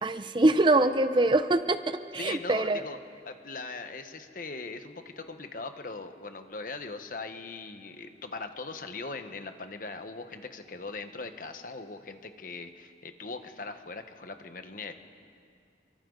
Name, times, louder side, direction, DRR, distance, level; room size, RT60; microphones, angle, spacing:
voice 1, 0.0-2.8, right 2 dB, 25° right, 11 dB, 0.6 m, -24 dB
voice 2, 2.2-3.0 3.2-14.9, left 3 dB, 50° left, 7 dB, 1.2 m, -40 dB
29.5 x 24.0 x 4.0 m, 2.3 s
head